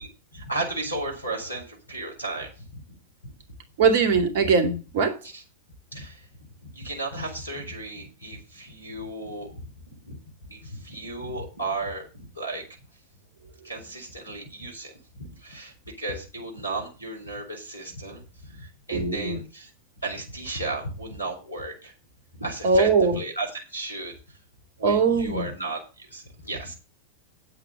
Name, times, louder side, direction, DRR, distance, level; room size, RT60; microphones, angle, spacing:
voice 1, 0.3-2.8 3.2-3.3 5.2-5.4 5.9-6.2 6.6-10.2 10.4-12.7 13.6-19.7 20.0-21.9 22.3-22.9 23.1-24.1 24.8-26.7, right 2 dB, 85° left, 4.3 m, -34 dB
voice 2, 3.8-5.2 18.9-19.4 22.6-23.2 24.8-25.5, right 4 dB, 55° right, 2.4 m, -21 dB
9.4 x 7.8 x 7.0 m
figure-of-eight pair, 90°, 0 cm